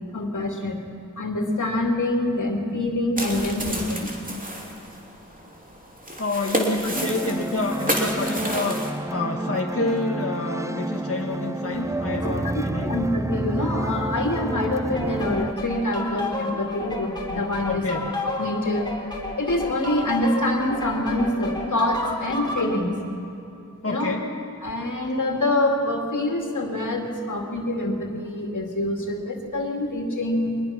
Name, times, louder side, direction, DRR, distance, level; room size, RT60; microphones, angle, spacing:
voice 1, 0.1-0.8 1.2-4.1 12.1-17.8 18.4-18.9 19.4-23.0 23.8-24.2 24.6-30.6, left 1 dB, 80° left, 2 dB, 2.5 m, -25 dB
sound 1, 3.2-8.9, right 1 dB, 25° right, 3.2 m, -30 dB
voice 2, 6.2-8.8 9.1-13.0 17.6-18.1 23.8-24.3, left 2 dB, 50° left, 0 dB, 1.7 m, -28 dB
sound 2, 6.9-15.5, right 1 dB, 10° right, 0.5 m, -29 dB
sound 3, 15.0-22.7, left 2 dB, 15° left, 3.5 m, -32 dB
23.5 x 20.5 x 5.9 m, 2.8 s
wide cardioid pair, 65°, 30 cm